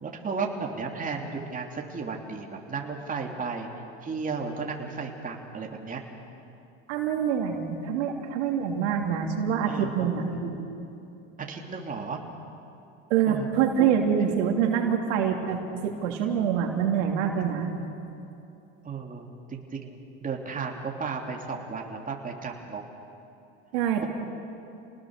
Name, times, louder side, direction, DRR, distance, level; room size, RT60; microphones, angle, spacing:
voice 1, 0.0-3.7 4.0-6.0 9.7-10.4 11.4-12.2 13.3-13.5 13.8-13.9 14.3-14.4 18.8-22.8 24.0-24.1, right 5 dB, 25° right, 0 dB, 3.2 m, -34 dB
voice 2, 6.9-10.7 13.1-17.7 23.7-24.1, right 8 dB, 75° right, 2 dB, 3.1 m, -25 dB
29.5 x 19.5 x 6.7 m, 2.8 s
hypercardioid pair, 95°, 35 cm